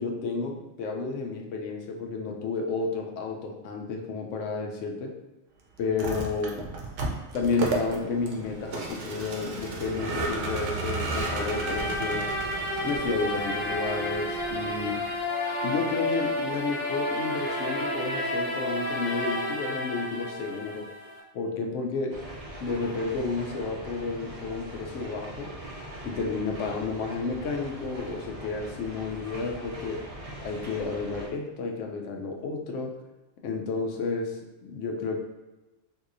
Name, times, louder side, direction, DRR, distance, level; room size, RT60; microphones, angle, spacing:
voice 1, 0.0-5.2 5.8-6.7 7.3-12.3 12.8-15.0 15.6-20.9 21.3-22.2 22.6-25.5 26.0-30.0 30.4-33.0 33.4-35.2, left 4 dB, 85° left, 2 dB, 0.9 m, -31 dB
Vehicle, 5.8-15.2, right 3 dB, 80° right, 1.0 m, -34 dB
sound 1, 11.2-21.2, left 1 dB, 55° left, 0.7 m, -31 dB
sound 2, 22.1-31.3, right 1 dB, 40° right, 0.6 m, -41 dB
3.9 x 2.7 x 2.5 m, 1.1 s
omnidirectional pair, 1.2 m